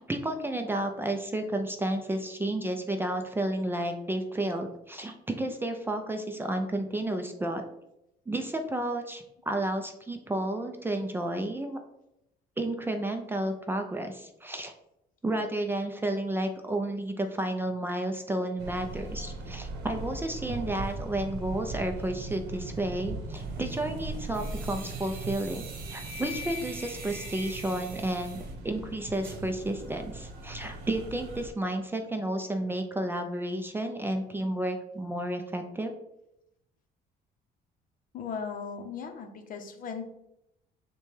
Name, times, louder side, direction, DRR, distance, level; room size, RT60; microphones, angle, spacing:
voice 1, 0.0-7.6 8.3-11.8 12.6-14.7 15.2-25.6 25.9-35.9, right 1 dB, 15° right, 5 dB, 0.4 m, -32 dB
sound 1, 18.6-31.5, right 2 dB, 85° right, 0.8 m, -39 dB
sound 2, 23.3-28.5, equal, 55° right, 1.0 m, -43 dB
voice 2, 38.1-40.1, left 6 dB, 55° left, 6 dB, 0.7 m, -37 dB
6.5 x 2.2 x 3.2 m, 0.83 s
cardioid pair, 110°, 17 cm